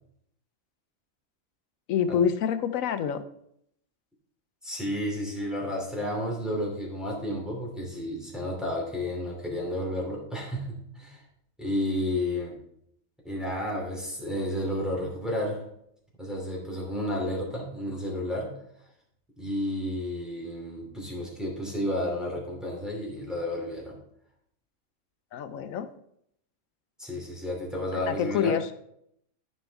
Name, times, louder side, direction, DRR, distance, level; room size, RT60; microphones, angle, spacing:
voice 1, 1.9-3.2 25.3-25.9 27.9-28.7, left 8 dB, 75° left, 11 dB, 1.1 m, -27 dB
voice 2, 4.6-11.2 11.6-12.6 13.2-15.6 16.2-18.5 19.4-24.0 27.0-28.6, left 1 dB, ahead, -3 dB, 2.7 m, -31 dB
13.5 x 5.3 x 3.4 m, 0.72 s
omnidirectional pair, 1.4 m